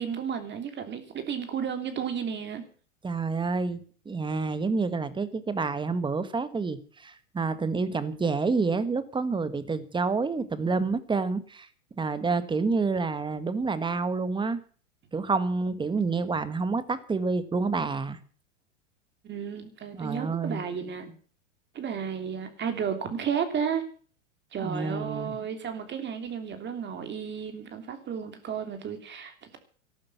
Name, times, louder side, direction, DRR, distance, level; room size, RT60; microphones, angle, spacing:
voice 1, 0.0-2.6 19.2-21.1 21.7-23.8 24.5-29.6, right 7 dB, 30° right, 7 dB, 3.1 m, -33 dB
voice 2, 3.0-11.7 12.0-14.6 15.1-18.2 19.9-20.6 24.6-25.3, right 4 dB, 10° right, 13 dB, 1.5 m, -28 dB
14.0 x 12.0 x 7.0 m, 0.43 s
hypercardioid pair, 120°, 39 cm